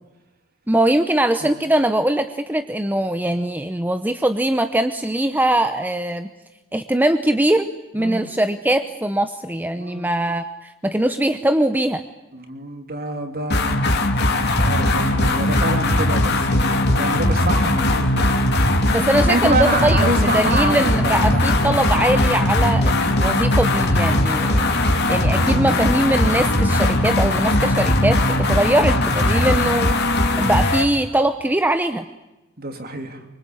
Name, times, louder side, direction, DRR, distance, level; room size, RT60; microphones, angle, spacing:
voice 1, 0.7-6.3 6.7-7.7 7.9-12.0 18.9-29.9 30.4-32.0, right 1 dB, 10° right, 9 dB, 0.8 m, -21 dB
voice 2, 8.0-8.3 9.8-10.1 12.3-18.2 19.3-21.6 22.0-22.1 25.3-25.7 29.3-29.6 32.6-33.2, right 2 dB, 45° right, 6 dB, 3.1 m, -27 dB
sound 1, 13.5-30.9, left 1 dB, 50° left, 2.7 m, -19 dB
25.0 x 24.0 x 8.7 m, 1.0 s
head